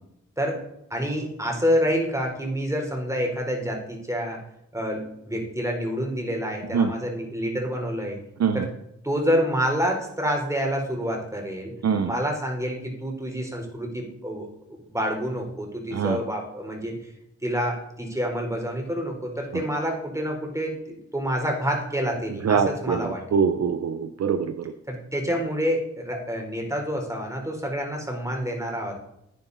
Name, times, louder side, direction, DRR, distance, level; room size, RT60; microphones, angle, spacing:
voice 1, 0.9-4.4 4.7-8.2 8.5-8.7 9.0-11.7 12.0-14.5 14.9-16.9 17.4-23.2 24.9-28.9, equal, 10° right, 1 dB, 3.8 m, -27 dB
voice 2, 22.4-24.7, right 6 dB, 60° right, 9 dB, 0.8 m, -23 dB
10.0 x 9.6 x 4.0 m, 0.79 s
cardioid pair, 75°, 30 cm